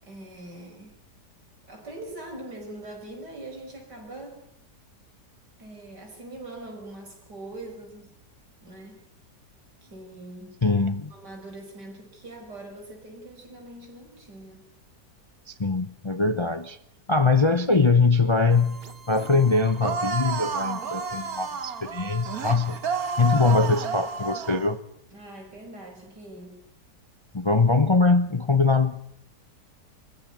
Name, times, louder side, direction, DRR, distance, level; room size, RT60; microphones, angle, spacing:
voice 1, 0.0-0.9 1.7-4.4 5.6-8.1 8.6-9.0 9.8-10.6 11.1-14.7 25.1-26.6, right 2 dB, 75° right, 2 dB, 6.0 m, -42 dB
voice 2, 10.6-11.1 15.5-16.8 17.1-18.8 19.1-22.8 23.2-24.8 27.3-29.0, left 3 dB, 25° left, 10 dB, 0.6 m, -22 dB
sound 1, 18.5-24.0, right 4 dB, 40° right, 1.4 m, -45 dB
sound 2, 19.8-24.7, right 5 dB, 60° right, 1.9 m, -31 dB
24.0 x 14.5 x 9.4 m, 0.75 s
omnidirectional pair, 1.8 m